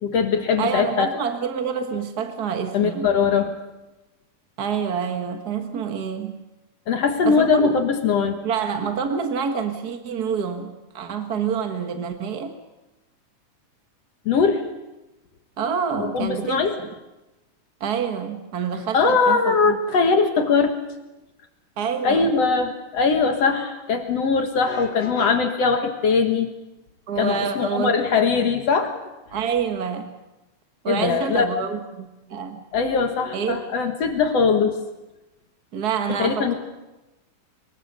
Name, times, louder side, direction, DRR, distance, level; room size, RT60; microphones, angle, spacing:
voice 1, 0.0-1.1 2.7-3.5 6.9-8.4 14.3-14.6 16.0-16.7 18.9-20.7 22.0-26.5 27.2-29.0 30.9-31.5 32.7-34.7 36.2-36.5, left 5 dB, 55° left, 6 dB, 2.2 m, -21 dB
voice 2, 0.6-3.1 4.6-6.4 7.2-7.8 8.4-12.6 15.6-16.9 17.8-19.8 21.8-22.3 27.1-28.0 28.3-28.4 29.3-30.1 30.8-32.6 33.3-33.6 35.7-36.5, right 6 dB, 55° right, 6 dB, 1.1 m, -27 dB
24.5 x 22.5 x 6.7 m, 1.0 s
omnidirectional pair, 3.8 m